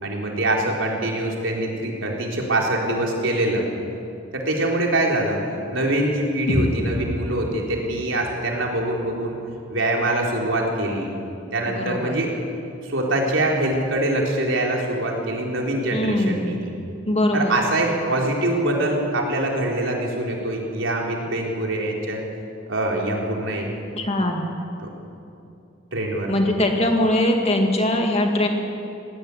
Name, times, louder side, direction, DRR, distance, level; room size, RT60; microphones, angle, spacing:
voice 1, 0.0-3.6 4.3-5.4 5.7-9.4 9.7-11.1 11.5-12.3 12.8-16.7 17.3-22.2 22.7-23.7 24.8-24.9 25.9-26.4, right 1 dB, 80° right, -1 dB, 4.0 m, -24 dB
sound 1, 6.5-10.5, left 1 dB, 60° left, 3.3 m, -31 dB
voice 2, 11.7-12.2 15.9-16.5 17.1-17.6 24.0-24.5 26.3-28.5, left 1 dB, 30° left, 2 dB, 2.3 m, -21 dB
17.0 x 17.0 x 9.8 m, 2.6 s
head